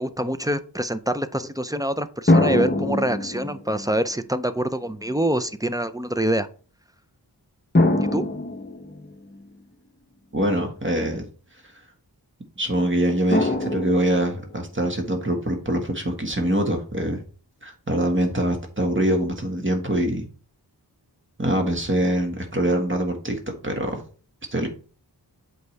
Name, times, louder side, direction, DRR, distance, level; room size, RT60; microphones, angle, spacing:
voice 1, 0.0-6.5 8.0-8.2, right 1 dB, 10° right, 11 dB, 0.5 m, -25 dB
sound 1, 2.3-4.0 5.0-5.1 7.7-9.5 13.3-14.6, left 2 dB, 25° left, 0.9 m, -23 dB
voice 2, 10.3-11.3 12.6-17.2 17.6-20.2 21.4-24.0 24.5-24.7, right 1 dB, 30° right, 3 dB, 1.6 m, -24 dB
7.9 x 4.7 x 3.3 m, 0.39 s
wide cardioid pair, 50°, 41 cm